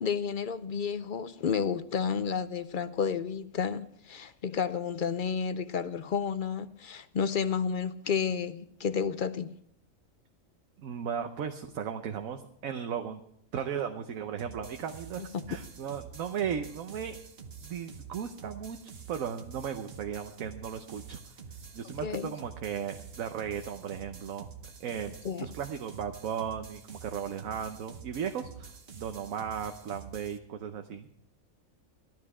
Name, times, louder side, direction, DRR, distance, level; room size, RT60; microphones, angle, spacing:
voice 1, 0.0-9.6 15.3-15.4 22.0-22.3 25.2-25.5, left 6 dB, 55° left, 0.6 m, -31 dB
voice 2, 10.8-13.2 13.5-17.2 17.6-18.8 19.1-21.2 21.7-24.5 24.8-31.1, right 8 dB, 75° right, 1.2 m, -36 dB
sound 1, 14.4-30.4, right 6 dB, 50° right, 1.2 m, -47 dB
15.0 x 12.5 x 4.9 m
omnidirectional pair, 1.4 m